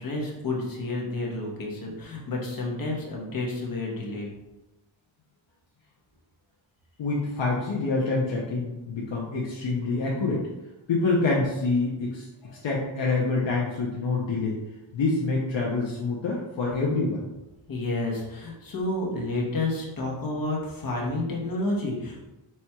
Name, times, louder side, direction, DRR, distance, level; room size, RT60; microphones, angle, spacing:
voice 1, 0.0-4.3 12.4-12.6 17.7-22.2, left 2 dB, 45° left, -2 dB, 1.0 m, -30 dB
voice 2, 7.0-10.5 10.9-12.2 12.6-14.6 14.9-17.2, left 3 dB, 65° left, -4 dB, 0.8 m, -26 dB
4.3 x 4.3 x 2.3 m, 1.0 s
wide cardioid pair, 145°, 49 cm